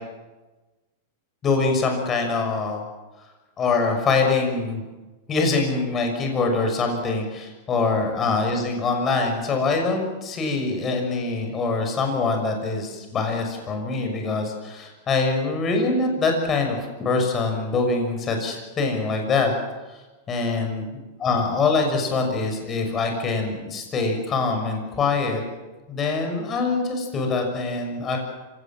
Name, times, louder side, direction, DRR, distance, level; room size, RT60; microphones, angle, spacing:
voice 1, 1.4-2.8 3.6-4.8 5.3-19.5 20.3-20.9 21.2-25.4 25.9-28.2, left 3 dB, 25° left, 4 dB, 6.4 m, -24 dB
26.5 x 18.0 x 7.5 m, 1.2 s
supercardioid pair, 140°, 0 cm